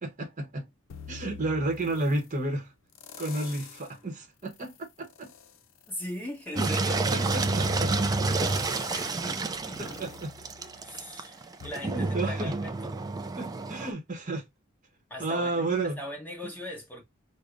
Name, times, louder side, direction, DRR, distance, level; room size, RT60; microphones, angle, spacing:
voice 1, 0.0-0.7 1.1-2.7 3.2-5.3 6.5-6.7 7.1-7.9 10.0-10.3 11.8-12.5 13.4-14.4 15.2-16.0, right 2 dB, 40° right, 0.9 m, -31 dB
sound 1, 0.9-2.3 2.9-4.0 4.4-11.1 11.6-11.7, left 6 dB, 75° left, 0.5 m, -45 dB
voice 2, 5.9-10.0 10.6-12.9 15.1-17.0, left 1 dB, 10° left, 1.1 m, -41 dB
Engine, 6.6-13.9, right 3 dB, 20° right, 0.3 m, -29 dB
5.0 x 2.1 x 2.4 m
head